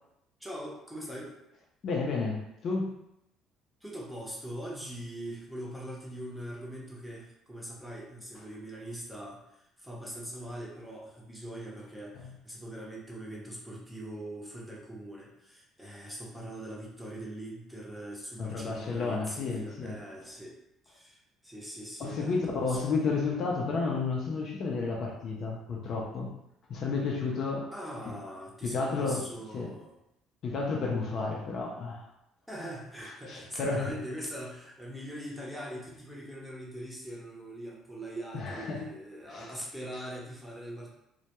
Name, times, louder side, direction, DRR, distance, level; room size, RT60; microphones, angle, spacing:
voice 1, 0.4-1.4 3.8-20.6 20.8-23.0 27.7-30.0 32.5-40.9, right 1 dB, ahead, -5 dB, 0.6 m, -42 dB
voice 2, 1.8-2.9 12.1-12.3 18.4-20.0 22.0-26.3 26.7-27.7 28.6-29.2 29.5-29.7 30.4-32.1 33.3-33.9 38.3-38.9 39.3-39.5, left 4 dB, 50° left, -1 dB, 0.4 m, -31 dB
2.1 x 2.1 x 2.8 m, 0.81 s
cardioid pair, 120°, 0 cm